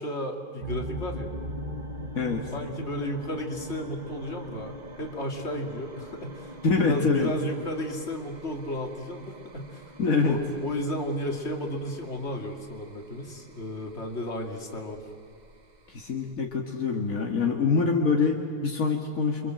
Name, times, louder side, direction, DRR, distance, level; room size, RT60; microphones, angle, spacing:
voice 1, 0.0-1.3 2.3-9.8 10.2-15.0, left 1 dB, 50° left, 2 dB, 2.9 m, -33 dB
sound 1, 0.6-16.3, equal, 30° right, 1.4 m, -41 dB
voice 2, 6.6-7.3 10.0-10.4 15.9-19.5, left 4 dB, 70° left, 1 dB, 2.2 m, -25 dB
29.0 x 24.5 x 7.7 m, 2.3 s
omnidirectional pair, 1.5 m